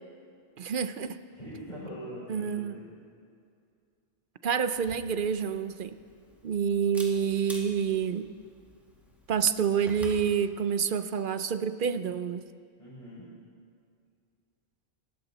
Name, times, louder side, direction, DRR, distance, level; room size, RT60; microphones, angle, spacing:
voice 1, 0.6-1.2 2.3-2.8 4.4-6.0 6.4-8.3 9.3-12.5, right 7 dB, 55° right, 11 dB, 0.7 m, -28 dB
voice 2, 1.3-2.9 12.8-13.3, equal, 35° left, -11 dB, 5.4 m, -42 dB
Camera, 4.7-10.3, equal, ahead, 2.1 m, -49 dB
26.5 x 13.0 x 4.1 m, 2.3 s
omnidirectional pair, 1.2 m